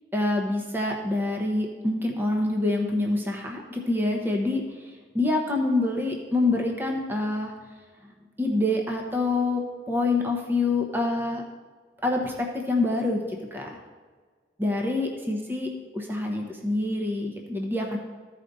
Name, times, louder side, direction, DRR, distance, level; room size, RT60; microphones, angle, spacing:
voice 1, 0.1-7.5 8.4-11.4 12.0-13.7 14.6-18.0, left 2 dB, 10° right, 1 dB, 0.9 m, -26 dB
14.5 x 5.0 x 4.0 m, 1.5 s
head